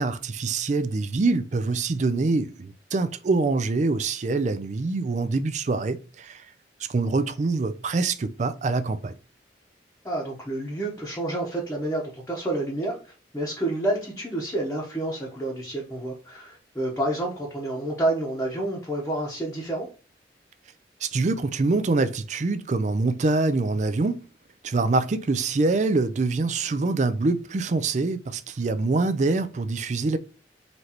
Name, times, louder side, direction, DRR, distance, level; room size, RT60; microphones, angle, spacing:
voice 1, 0.0-6.4 6.9-9.1 21.0-24.3 24.6-30.2, right 3 dB, 40° right, 0.4 m, -25 dB
voice 2, 10.0-13.0 13.3-19.9, right 1 dB, 15° left, 0.9 m, -29 dB
4.0 x 3.2 x 2.9 m
head